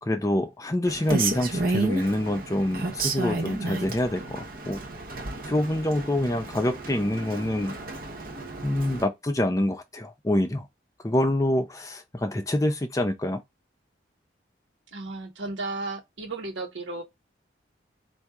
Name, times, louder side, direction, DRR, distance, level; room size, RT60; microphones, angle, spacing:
voice 1, 0.0-4.8 5.5-7.7 8.6-10.6 11.0-13.4, left 1 dB, 15° left, 0.5 m, -26 dB
Rain, 0.9-9.0, right 3 dB, 50° right, 0.8 m, -32 dB
voice 2, 14.9-17.0, right 2 dB, 90° right, 1.3 m, -34 dB
4.5 x 2.6 x 3.5 m
head